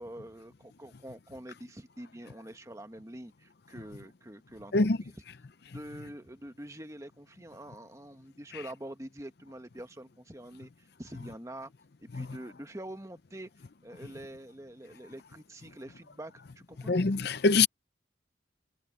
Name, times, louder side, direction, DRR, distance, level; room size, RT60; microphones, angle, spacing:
voice 1, 0.0-4.7 5.6-11.7 12.0-13.5 13.8-16.9, right 1 dB, 15° right, 1.2 m, -45 dB
voice 2, 16.9-17.7, left 3 dB, 55° left, 0.6 m, -24 dB
head